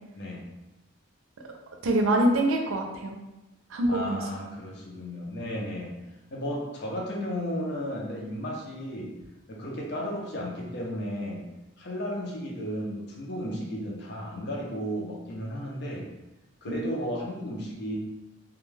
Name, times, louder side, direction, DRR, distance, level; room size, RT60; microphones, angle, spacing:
voice 1, 1.8-3.2 3.7-4.2 16.6-16.9, right 1 dB, 75° right, 2 dB, 0.4 m, -25 dB
voice 2, 3.9-5.9 6.3-9.1 9.5-11.4 11.8-16.1 16.6-18.0, equal, 55° left, -2 dB, 0.6 m, -34 dB
2.3 x 2.2 x 3.1 m, 0.98 s
head